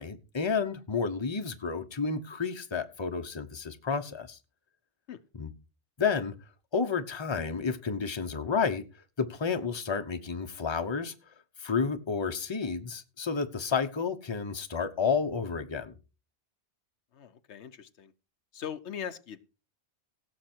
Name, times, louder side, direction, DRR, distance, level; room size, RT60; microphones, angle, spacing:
voice 1, 0.0-4.4 5.4-5.5 6.0-6.3 6.7-8.8 9.2-11.1 11.6-15.9, left 5 dB, 25° left, 1.0 m, -31 dB
voice 2, 17.1-18.1 18.5-19.4, left 8 dB, 80° left, 1.1 m, -40 dB
17.0 x 7.1 x 4.4 m
omnidirectional pair, 1.1 m